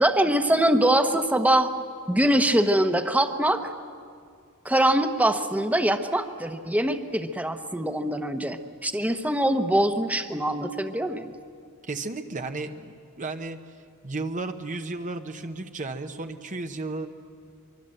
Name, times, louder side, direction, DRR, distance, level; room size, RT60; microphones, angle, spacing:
voice 1, 0.0-1.7 2.1-3.7 4.6-11.3, right 1 dB, 5° right, 8 dB, 1.0 m, -23 dB
voice 2, 11.8-13.6 14.0-17.1, right 3 dB, 35° right, 7 dB, 0.9 m, -33 dB
24.5 x 23.5 x 7.8 m, 2.2 s
head